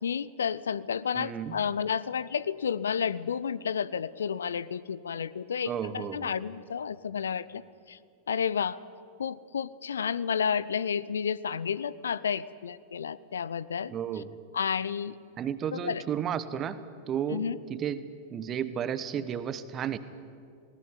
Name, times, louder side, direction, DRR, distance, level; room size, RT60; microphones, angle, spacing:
voice 1, 0.0-7.6 7.9-8.0 8.3-8.8 9.2-14.2 14.5-15.1 15.7-16.0 17.3-17.6, left 7 dB, 70° left, 18 dB, 0.6 m, -31 dB
voice 2, 1.1-1.6 5.7-6.3 13.9-14.3 15.4-16.8 17.1-20.0, right 8 dB, 30° right, 13 dB, 1.2 m, -33 dB
19.5 x 18.5 x 9.8 m, 2.3 s
figure-of-eight pair, 90°, 0 cm